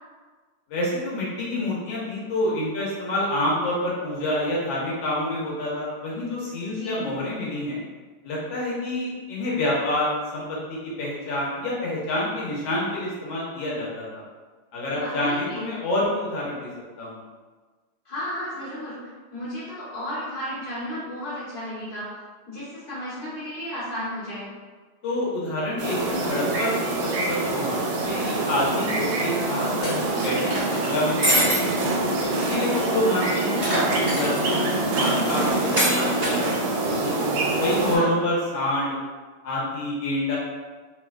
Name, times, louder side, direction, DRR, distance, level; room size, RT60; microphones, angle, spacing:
voice 1, 0.7-7.8 8.2-14.2 14.7-16.7 17.0-17.2 25.0-31.9 32.3-34.5 34.9-37.2 37.6-39.0 39.4-40.4, left 1 dB, 65° left, -6 dB, 1.5 m, -28 dB
voice 2, 6.7-7.0 14.9-15.6 18.0-22.1 22.4-24.5 32.6-32.8 37.6-38.1, equal, 35° left, -11 dB, 1.0 m, -34 dB
sound 1, 25.8-38.0, right 2 dB, 75° right, 1.3 m, -25 dB
sound 2, 29.8-30.8 31.2-31.6 32.0-32.1 32.3-32.4 33.6-34.5 35.8-36.4, equal, 15° right, 1.0 m, -24 dB
3.4 x 2.9 x 2.3 m, 1.4 s
omnidirectional pair, 2.4 m